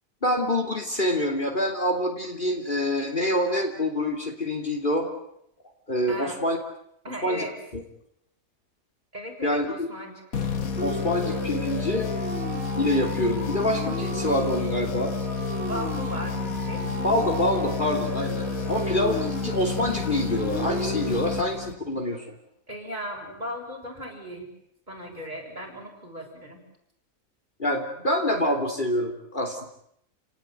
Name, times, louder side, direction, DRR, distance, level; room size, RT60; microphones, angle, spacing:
voice 1, 0.2-5.1 5.9-6.6 7.2-7.4 7.7-7.8 9.4-9.9 10.8-12.1 12.7-15.2 17.0-22.3 27.6-29.7, left 1 dB, 35° left, 3 dB, 3.3 m, -26 dB
voice 2, 6.1-6.4 7.0-7.6 9.1-10.1 15.6-16.9 22.7-24.5 24.9-26.6, equal, 30° right, 0 dB, 7.3 m, -37 dB
sound 1, 10.3-22.0, left 5 dB, 80° left, 2.4 m, -30 dB
Siren, 10.8-21.2, right 1 dB, 45° right, 4.4 m, -35 dB
29.5 x 19.0 x 9.4 m, 0.74 s
omnidirectional pair, 1.5 m